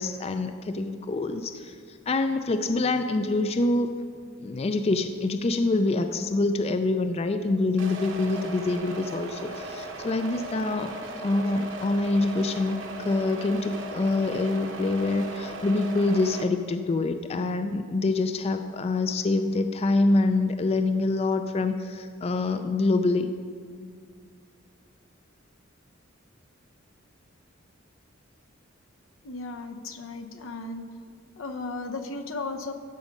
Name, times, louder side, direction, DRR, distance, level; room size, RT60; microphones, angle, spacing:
voice 1, 0.0-3.9 4.4-10.9 11.2-23.3, left 2 dB, 30° left, 8 dB, 0.3 m, -26 dB
sound 1, 7.8-16.4, right 2 dB, 70° right, 1.0 m, -37 dB
voice 2, 29.2-30.9 31.4-32.7, left 3 dB, 80° left, 7 dB, 0.8 m, -35 dB
13.0 x 5.3 x 5.2 m, 2.1 s
head